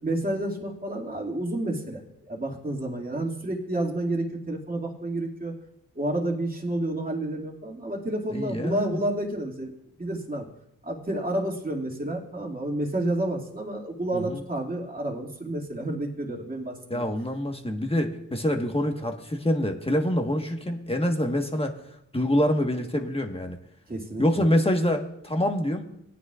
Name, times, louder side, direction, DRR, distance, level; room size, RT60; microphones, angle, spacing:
voice 1, 0.0-5.5 6.0-9.7 10.0-10.5 10.8-17.1 23.9-24.5, right 1 dB, 25° right, -2 dB, 2.4 m, -30 dB
voice 2, 8.3-9.0 14.1-14.4 16.9-21.8 22.1-23.6 24.2-25.9, left 1 dB, 20° left, 3 dB, 1.5 m, -26 dB
18.0 x 9.4 x 2.5 m, 0.77 s
cardioid pair, 55°, 32 cm